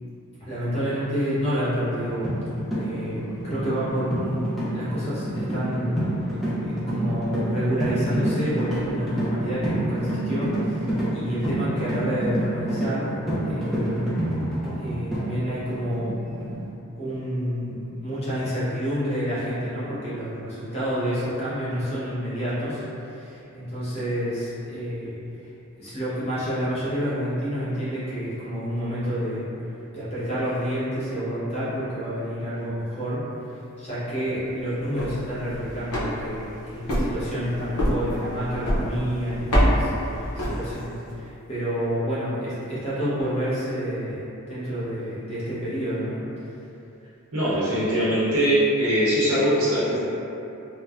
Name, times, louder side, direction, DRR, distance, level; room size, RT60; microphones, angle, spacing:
voice 1, 0.4-2.3 2.8-13.1 13.4-14.0 14.8-16.2 17.0-25.2 25.8-29.5 29.9-33.3 33.8-46.2, equal, 30° left, -11 dB, 0.8 m, -29 dB
sound 1, 2.0-16.6, equal, ahead, 0.5 m, -28 dB
sound 2, 34.8-41.1, equal, 80° left, 0.7 m, -26 dB
voice 2, 47.3-50.0, equal, 75° right, -10 dB, 0.8 m, -21 dB
3.2 x 2.1 x 2.4 m, 2.9 s
head